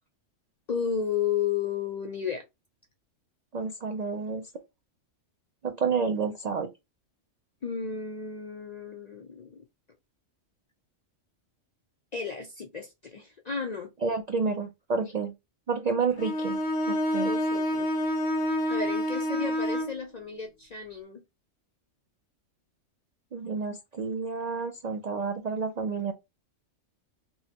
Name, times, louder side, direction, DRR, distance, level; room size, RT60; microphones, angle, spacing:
voice 1, 0.7-2.4 7.6-9.6 12.1-13.9 17.2-17.9 18.7-21.2, left 6 dB, 55° left, 0.4 m, -33 dB
voice 2, 3.5-4.5 5.6-6.7 14.0-15.3 15.7-16.6 16.9-17.3 23.3-26.1, right 5 dB, 65° right, 0.4 m, -30 dB
Bowed string instrument, 16.2-20.0, equal, 80° left, 1.1 m, -28 dB
5.4 x 2.1 x 2.7 m
omnidirectional pair, 1.3 m